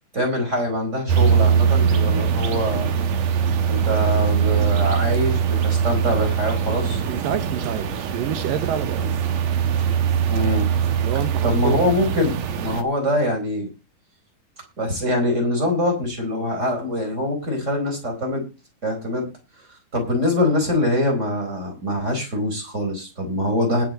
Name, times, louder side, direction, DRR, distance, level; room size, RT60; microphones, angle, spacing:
voice 1, 0.1-2.9 3.7-7.0 9.0-9.1 10.3-10.7 11.4-13.7 14.8-18.4 18.8-19.3 19.9-23.8, left 1 dB, 20° right, 3 dB, 4.5 m, -24 dB
sound 1, 1.1-12.8, right 7 dB, 65° right, 2.1 m, -21 dB
voice 2, 7.1-9.1 11.0-11.8, right 9 dB, 90° right, 9 dB, 2.9 m, -28 dB
20.0 x 7.0 x 4.1 m, 0.30 s
omnidirectional pair, 3.8 m